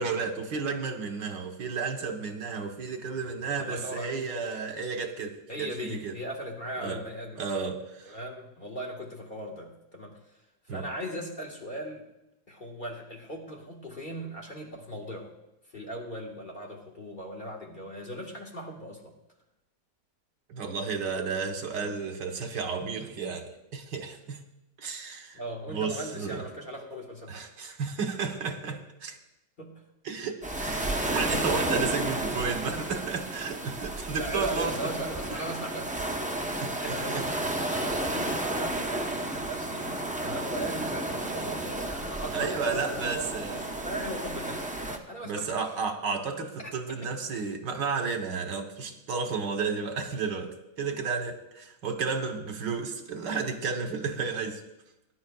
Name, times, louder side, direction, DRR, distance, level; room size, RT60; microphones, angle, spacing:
voice 1, 0.0-6.1 6.8-7.0 7.4-8.2 10.7-10.9 20.5-24.4 24.8-25.4 25.7-26.4 27.3-29.2 30.0-34.8 35.3-35.4 36.6-37.2 41.2-41.4 42.3-43.6 45.3-54.6, right 5 dB, 80° right, 1.8 m, -32 dB
voice 2, 3.6-4.2 5.5-7.6 8.0-10.3 10.7-12.0 12.5-15.3 15.7-19.1 25.3-27.4 29.6-29.8 34.1-36.1 36.8-40.0 40.2-45.5 47.0-47.1, right 1 dB, 30° left, 1.5 m, -38 dB
sound 1, 30.4-45.0, right 1 dB, 10° right, 0.3 m, -32 dB
19.5 x 10.5 x 2.3 m
omnidirectional pair, 1.9 m